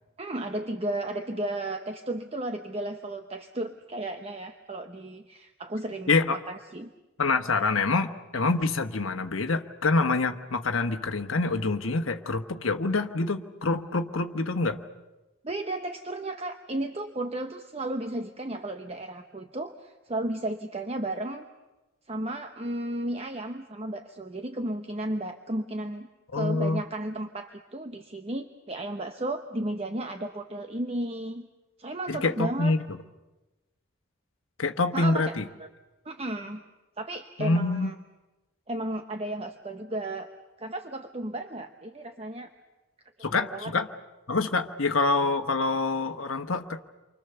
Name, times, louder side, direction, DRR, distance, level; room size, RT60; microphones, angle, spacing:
voice 1, 0.2-6.9 15.4-21.5 22.1-26.1 26.3-31.5 31.8-32.7 34.9-35.3 35.6-35.7 36.0-36.6 37.0-37.9 38.7-40.3 40.6-42.5 43.3-43.7, right 1 dB, 30° right, 6 dB, 0.9 m, -34 dB
voice 2, 7.2-14.8 26.3-26.8 32.1-32.8 34.6-35.4 37.4-37.9 43.2-43.9 44.3-46.8, left 3 dB, 75° left, 5 dB, 1.2 m, -26 dB
29.0 x 24.5 x 6.9 m, 1.1 s
head